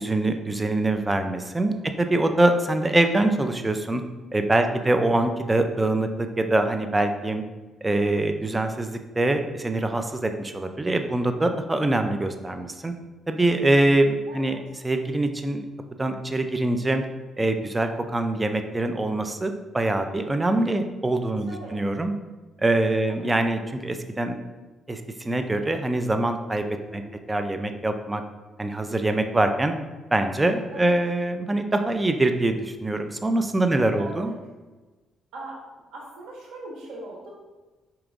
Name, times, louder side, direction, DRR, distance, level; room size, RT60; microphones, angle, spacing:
voice 1, 0.0-4.0 4.3-7.4 7.8-12.9 13.3-14.6 14.8-15.6 16.0-17.0 17.4-22.1 22.6-24.4 24.9-27.0 27.3-28.2 28.6-29.7 30.1-34.3, right 2 dB, 15° right, 7 dB, 0.4 m, -24 dB
voice 2, 21.5-21.8 23.0-23.3 26.9-27.2 30.7-30.9 33.7-34.3 35.3-37.3, right 2 dB, 85° right, -3 dB, 1.4 m, -41 dB
5.0 x 2.9 x 3.6 m, 1.2 s
cardioid pair, 90°, 0 cm